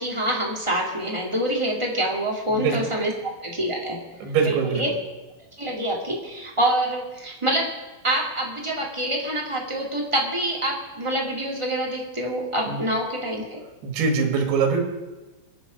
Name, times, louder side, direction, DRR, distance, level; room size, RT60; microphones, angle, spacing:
voice 1, 0.0-4.0 4.4-4.9 5.6-7.7 8.0-13.6, right 1 dB, 15° right, -2 dB, 0.9 m, -26 dB
voice 2, 4.2-4.8 12.7-12.8 13.8-14.8, right 5 dB, 90° right, 3 dB, 3.8 m, -23 dB
23.0 x 8.7 x 5.1 m, 1.1 s
omnidirectional pair, 4.5 m